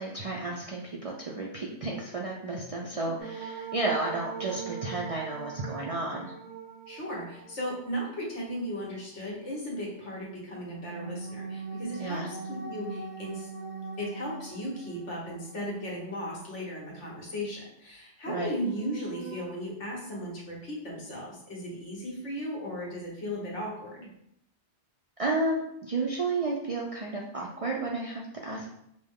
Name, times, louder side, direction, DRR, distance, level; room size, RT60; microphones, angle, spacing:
voice 1, 0.0-6.3 12.0-12.3 18.3-18.5 25.2-28.7, right 2 dB, 60° right, -2 dB, 0.3 m, -32 dB
sound 1, 3.2-8.4 10.6-16.8 17.1-17.2 18.6-19.5, right 5 dB, 75° right, 0.9 m, -41 dB
voice 2, 6.9-13.5 14.0-24.1, equal, 85° left, -4 dB, 1.6 m, -36 dB
5.1 x 2.1 x 3.6 m, 0.78 s
omnidirectional pair, 1.2 m